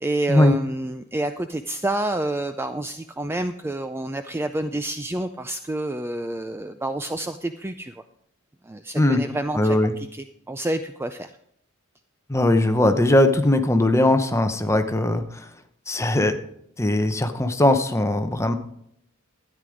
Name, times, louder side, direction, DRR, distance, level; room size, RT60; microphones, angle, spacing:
voice 1, 0.0-7.9 8.6-11.3, right 1 dB, 10° right, 9 dB, 0.4 m, -28 dB
voice 2, 9.5-9.9 12.3-15.5 15.9-16.3 16.8-18.5, left 1 dB, 15° left, 7 dB, 0.8 m, -20 dB
13.0 x 9.4 x 5.0 m, 0.73 s
head